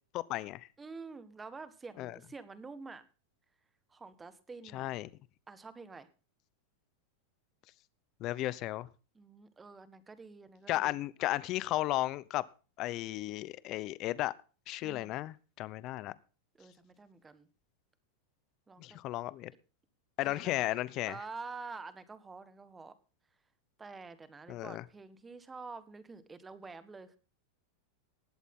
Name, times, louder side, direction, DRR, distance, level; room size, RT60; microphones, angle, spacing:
voice 1, 0.1-0.7 2.0-2.1 4.7-5.1 8.2-8.9 10.7-12.4 12.8-14.3 14.7-16.1 18.8-19.5 20.2-21.2 24.5-24.8, left 16 dB, 45° left, 0.8 m, -34 dB
voice 2, 0.8-3.0 3.9-5.0 5.5-6.1 9.1-11.0 14.8-15.2 16.6-17.5 18.7-19.0 20.2-23.0 23.8-27.2, right 4 dB, 15° right, 1.6 m, -48 dB
19.5 x 8.2 x 3.8 m
supercardioid pair, 130°, 0 cm